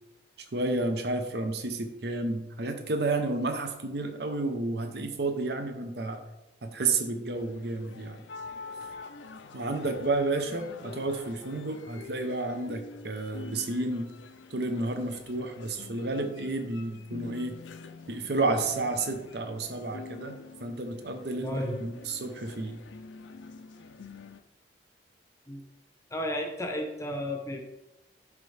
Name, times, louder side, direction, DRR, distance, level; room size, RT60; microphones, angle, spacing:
voice 1, 0.5-6.2 6.6-8.2 9.5-14.1 14.5-17.6 18.1-22.8, right 2 dB, 60° right, 7 dB, 0.7 m, -31 dB
sound 1, 7.3-24.4, left 4 dB, 80° left, 0.5 m, -46 dB
voice 2, 21.4-21.8 25.5-25.6 26.1-27.6, left 1 dB, 15° left, 3 dB, 0.7 m, -32 dB
10.5 x 3.5 x 3.3 m, 0.95 s
head